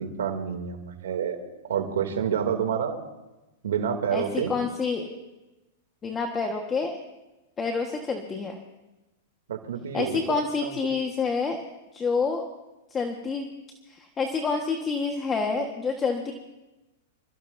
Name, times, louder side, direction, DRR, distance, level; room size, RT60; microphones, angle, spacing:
voice 1, 0.0-1.4 1.6-3.0 3.6-4.5 9.5-10.9, right 8 dB, 85° right, 4 dB, 2.8 m, -28 dB
voice 2, 4.1-5.1 6.0-7.0 7.6-8.5 9.9-11.6 11.9-12.5 12.9-13.5 13.9-16.3, left 4 dB, 20° left, 3 dB, 1.5 m, -28 dB
27.5 x 14.5 x 2.7 m, 1.0 s
hypercardioid pair, 130°, 0 cm